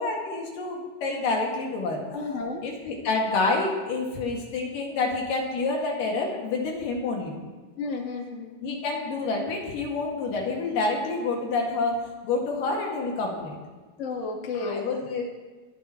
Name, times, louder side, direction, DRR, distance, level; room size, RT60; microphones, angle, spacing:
voice 1, 0.0-2.0 2.6-7.4 8.6-13.6 14.6-15.3, left 3 dB, 75° left, -1 dB, 3.8 m, -28 dB
voice 2, 2.1-2.6 7.8-8.5 14.0-14.9, left 3 dB, 35° left, 1 dB, 1.2 m, -32 dB
27.0 x 11.0 x 3.1 m, 1.3 s
omnidirectional pair, 3.9 m